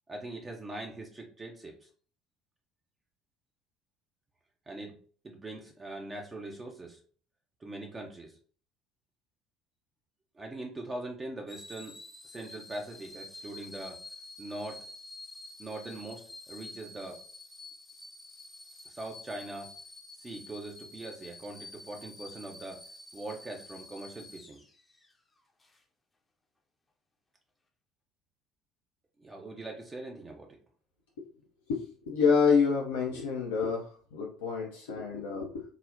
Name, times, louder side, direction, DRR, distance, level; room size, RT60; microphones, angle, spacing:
voice 1, 0.1-1.9 4.7-7.0 7.6-8.4 10.3-12.0 12.2-14.0 14.4-14.9 15.6-17.2 18.9-19.7 20.1-22.9 23.1-24.6 29.2-30.6, right 2 dB, 25° right, 0 dB, 0.5 m, -42 dB
sound 1, 11.5-25.1 25.6-25.8, left 2 dB, 20° left, 0.6 m, -49 dB
voice 2, 31.7-35.6, left 5 dB, 75° left, -1 dB, 0.4 m, -28 dB
3.8 x 2.0 x 2.5 m, 0.43 s
figure-of-eight pair, 60°, 0 cm